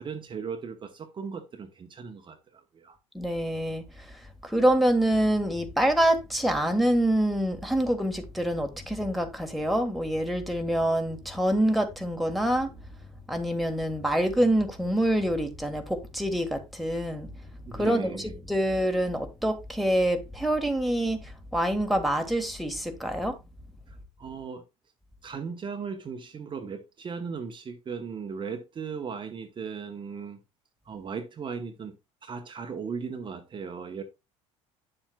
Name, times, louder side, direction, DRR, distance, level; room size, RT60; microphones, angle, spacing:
voice 1, 0.0-3.0 17.7-18.3 23.9-24.6 25.2-30.4 30.8-31.9 32.2-34.0, right 6 dB, 30° right, 1.0 m, -37 dB
voice 2, 3.1-4.1 4.4-12.7 13.3-17.3 17.7-23.4, right 1 dB, ahead, 1.5 m, -26 dB
9.7 x 7.2 x 2.3 m
figure-of-eight pair, 60°, 16 cm